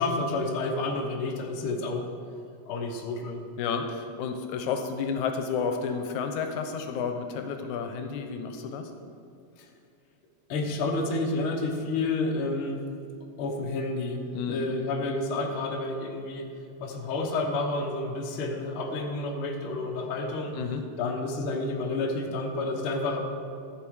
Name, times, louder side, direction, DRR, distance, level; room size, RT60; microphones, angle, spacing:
voice 1, 0.0-2.1 2.7-3.4 9.6-9.7 10.5-12.8 13.4-14.2 14.5-16.5 16.8-20.5 21.0-23.2, left 2 dB, 55° left, 1 dB, 1.6 m, -30 dB
voice 2, 3.6-8.9 14.3-14.6 20.6-20.8, left 6 dB, 85° left, 6 dB, 2.1 m, -31 dB
13.0 x 6.7 x 4.7 m, 2.5 s
omnidirectional pair, 3.4 m